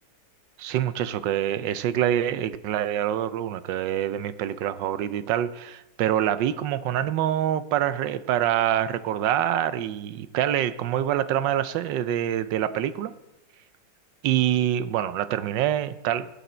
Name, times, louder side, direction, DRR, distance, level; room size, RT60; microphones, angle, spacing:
voice 1, 0.6-13.1 14.2-16.3, right 11 dB, 80° right, 14 dB, 1.3 m, -25 dB
18.5 x 8.3 x 4.3 m, 0.99 s
omnidirectional pair, 2.0 m